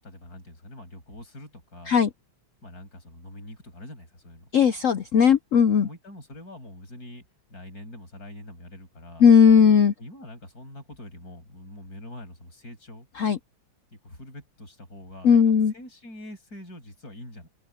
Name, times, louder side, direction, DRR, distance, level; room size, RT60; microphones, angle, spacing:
voice 1, 0.0-2.0 2.6-4.5 5.8-7.2 7.5-9.3 10.0-13.1 13.9-15.4 15.7-17.5, left 1 dB, 45° left, 8.7 m, -44 dB
voice 2, 4.5-5.9 9.2-9.9 13.2-13.4 15.2-15.7, left 7 dB, 80° left, 0.7 m, -17 dB
omnidirectional pair, 2.2 m